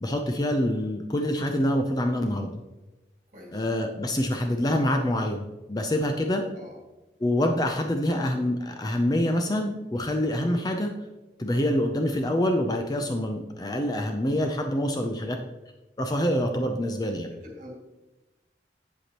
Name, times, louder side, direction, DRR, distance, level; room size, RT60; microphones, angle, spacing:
voice 1, 0.0-2.5 3.5-6.4 7.2-10.9 11.4-15.4 16.0-17.3, left 1 dB, 20° left, 4 dB, 0.5 m, -26 dB
voice 2, 3.3-3.6 4.3-4.4 6.5-6.8 17.3-17.7, left 1 dB, 45° right, -2 dB, 2.2 m, -46 dB
8.3 x 8.0 x 3.0 m, 1.1 s
head